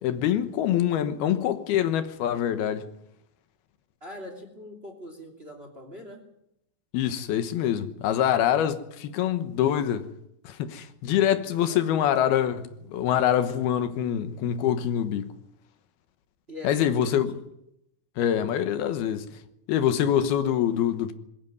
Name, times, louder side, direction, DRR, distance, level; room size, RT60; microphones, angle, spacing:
voice 1, 0.0-2.8 6.9-10.1 10.4-15.3 16.6-17.3 18.2-19.3 19.7-21.1, left 10 dB, 80° left, 3.1 m, -25 dB
voice 2, 4.0-6.3 11.7-12.1 16.5-17.4, left 1 dB, 15° right, 2.6 m, -42 dB
21.5 x 15.0 x 9.5 m
omnidirectional pair, 4.4 m